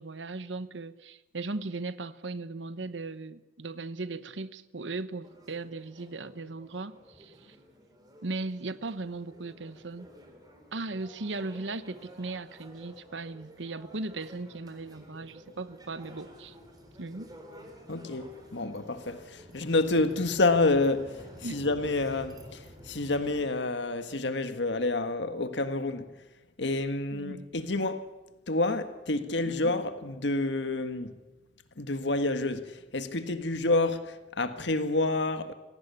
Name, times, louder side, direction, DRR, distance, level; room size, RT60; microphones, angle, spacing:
voice 1, 0.0-7.6 8.2-10.1 10.7-16.6 17.0-17.3 21.4-21.6 27.1-27.5 29.4-29.5, right 3 dB, 80° right, 1.0 m, -37 dB
sound 1, 5.2-23.5, equal, 20° right, 4.1 m, -51 dB
voice 2, 17.9-21.2 21.5-26.1 26.6-28.1 28.5-31.1 31.8-35.5, left 2 dB, 70° left, 1.7 m, -28 dB
26.5 x 17.5 x 8.4 m
head